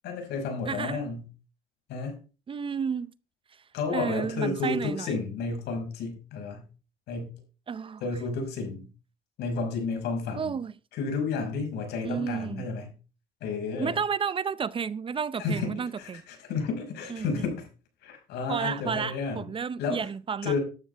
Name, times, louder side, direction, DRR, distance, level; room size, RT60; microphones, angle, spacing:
voice 1, 0.0-1.3 1.9-2.2 3.7-6.6 7.1-7.3 8.0-8.9 9.4-10.5 10.9-12.9 13.4-14.0 15.4-17.7 18.0-19.5 19.8-20.0 20.4-20.6, left 4 dB, 80° left, 5.6 m, -31 dB
voice 2, 0.7-1.0 2.5-3.1 3.9-5.1 7.7-8.0 10.4-10.7 12.0-12.7 13.8-16.2 17.1-17.5 18.5-20.6, right 6 dB, 30° right, 0.6 m, -31 dB
12.5 x 12.0 x 3.4 m
cardioid pair, 110°, 17 cm